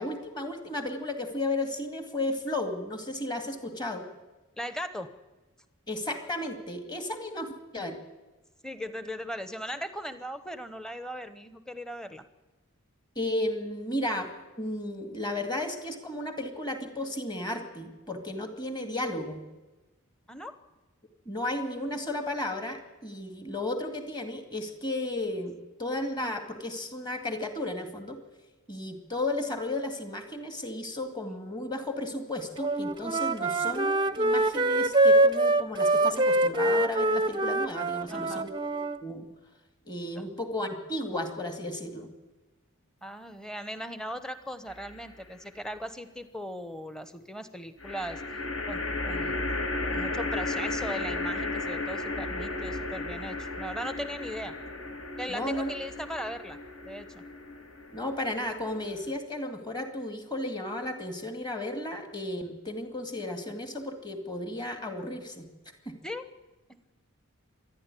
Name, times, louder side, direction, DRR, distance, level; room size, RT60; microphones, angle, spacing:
voice 1, 0.0-4.0 5.9-8.0 13.2-14.3 14.6-19.4 21.3-28.2 28.7-39.3 39.8-42.1 55.3-55.7 57.9-65.5 65.9-66.0, left 1 dB, 20° left, 6 dB, 2.3 m, -34 dB
voice 2, 4.6-5.1 8.6-12.2 20.3-20.6 38.1-38.5 43.0-48.2 48.7-49.5 49.8-54.5 55.2-56.6 56.8-57.2 66.0-66.3 66.7-66.9, equal, 5° left, 11 dB, 1.0 m, -38 dB
Wind instrument woodwind instrument, 32.6-39.0, right 2 dB, 20° right, 0.6 m, -24 dB
sound 1, 44.7-45.3 47.8-59.2, left 2 dB, 60° left, 2.7 m, -34 dB
25.5 x 10.5 x 9.9 m, 1.2 s
head